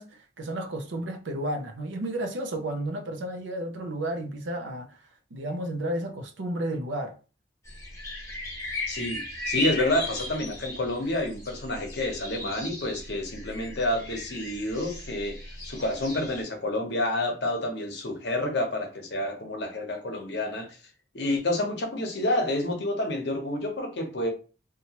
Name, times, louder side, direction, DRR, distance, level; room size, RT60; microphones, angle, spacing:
voice 1, 0.0-5.0 5.3-7.2, right 1 dB, 75° right, 0.5 m, -32 dB
sound 1, 7.6-16.4, left 1 dB, 15° left, 0.8 m, -36 dB
voice 2, 8.9-15.4 15.6-20.8 21.1-24.3, left 1 dB, 60° left, 0.8 m, -29 dB
2.9 x 2.2 x 2.8 m
head